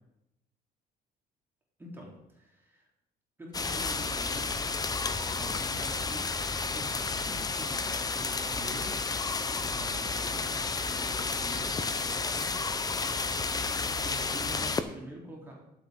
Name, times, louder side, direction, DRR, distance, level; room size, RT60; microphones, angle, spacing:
voice 1, 1.8-2.9 3.4-4.8 5.3-9.0 9.5-12.5 13.4-15.5, right 1 dB, 10° right, -2 dB, 3.7 m, -46 dB
sound 1, 3.5-14.8, left 4 dB, 20° left, 0.8 m, -31 dB
11.5 x 8.0 x 5.2 m, 0.86 s
cardioid pair, 110°, 17 cm